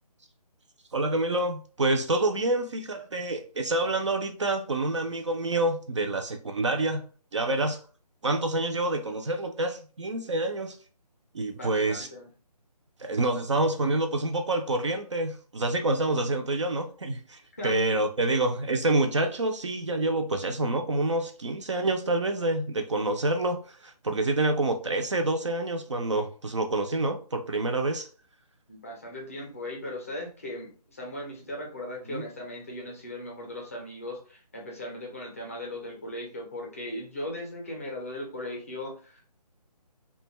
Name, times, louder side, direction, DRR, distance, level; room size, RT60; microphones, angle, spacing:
voice 1, 0.9-7.0 7.3-7.8 8.2-10.8 11.3-12.1 13.0-28.1 32.1-32.3, right 2 dB, 45° right, 0.4 m, -27 dB
voice 2, 11.5-12.3 17.6-17.7 28.7-39.2, left 1 dB, 20° left, 0.5 m, -38 dB
2.4 x 2.2 x 3.0 m
figure-of-eight pair, 165°, 21 cm